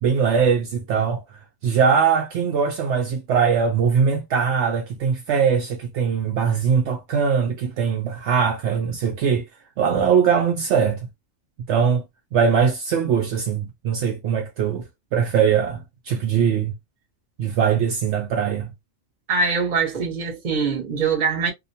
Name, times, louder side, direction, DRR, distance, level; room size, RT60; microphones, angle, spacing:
voice 1, 0.0-1.2 1.6-9.5 9.8-11.0 11.7-12.0 12.3-14.8 15.1-16.7 17.4-18.7, right 6 dB, 70° right, 0.8 m, -21 dB
voice 2, 19.3-21.5, right 5 dB, 40° right, 0.9 m, -23 dB
2.5 x 2.2 x 2.6 m
omnidirectional pair, 1.3 m